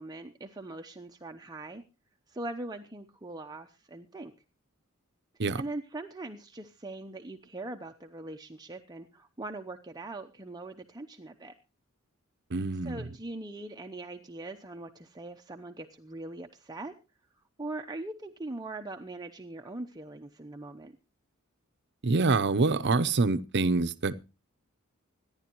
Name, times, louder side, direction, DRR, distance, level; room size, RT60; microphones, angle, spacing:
voice 1, 0.0-1.8 2.3-4.3 5.6-11.5 12.8-16.9 17.6-20.9, right 2 dB, 20° right, 0.8 m, -41 dB
voice 2, 12.5-13.1 22.0-24.1, right 3 dB, 55° right, 0.8 m, -26 dB
25.5 x 10.5 x 3.0 m
head